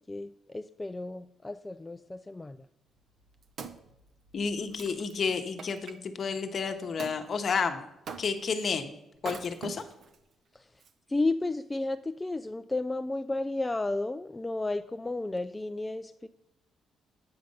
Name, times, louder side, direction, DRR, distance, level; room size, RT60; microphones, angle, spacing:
voice 1, 0.1-2.7 10.5-10.8 11.1-16.3, left 2 dB, 15° left, 8 dB, 0.3 m, -33 dB
Wood, 3.0-6.0 7.0-7.2 8.1-8.6 9.2-10.2 10.8-10.9, right 5 dB, 60° right, 0.7 m, -43 dB
voice 2, 4.3-7.9 8.2-8.9 9.2-9.9, left 5 dB, 50° left, 7 dB, 0.9 m, -31 dB
8.8 x 5.1 x 5.4 m, 0.90 s
cardioid pair, 90°, 0 cm